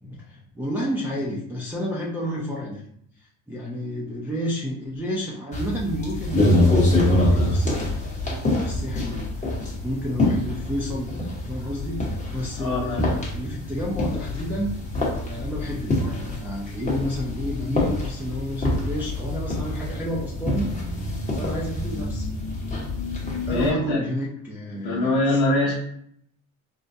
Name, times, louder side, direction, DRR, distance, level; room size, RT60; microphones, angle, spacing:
voice 1, 0.0-2.8 3.2-7.9 8.3-9.5 9.8-11.1 11.4-14.7 15.2-21.0 21.3-22.3 23.4-25.4, equal, 5° right, -6 dB, 0.6 m, -31 dB
sound 1, 5.5-23.7, left 1 dB, 20° left, 1.1 m, -25 dB
voice 2, 12.6-13.0 23.5-24.0 24.8-25.7, left 1 dB, 65° left, -5 dB, 0.9 m, -23 dB
3.8 x 2.1 x 2.7 m, 0.69 s
supercardioid pair, 80°, 39 cm